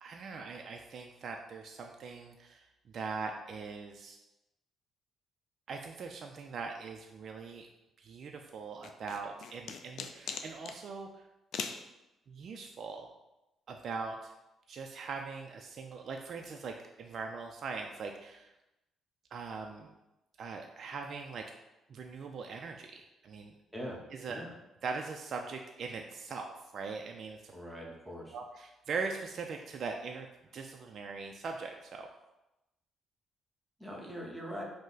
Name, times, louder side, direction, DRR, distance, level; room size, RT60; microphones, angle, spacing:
voice 1, 0.0-2.7 2.9-4.2 5.7-7.7 8.0-11.3 12.3-13.1 13.7-14.3 14.7-18.5 19.3-19.9 20.4-21.4 21.9-23.5 24.1-24.4 24.8-27.5 28.3-30.3 30.5-32.1, right 4 dB, 55° right, 3 dB, 0.4 m, -41 dB
sound 1, 8.8-10.8 11.5-11.8, left 6 dB, 70° left, 0.3 m, -40 dB
voice 2, 27.5-28.4 33.8-34.6, equal, 10° right, -2 dB, 1.0 m, -42 dB
5.1 x 2.1 x 3.9 m, 0.95 s
cardioid pair, 90°, 0 cm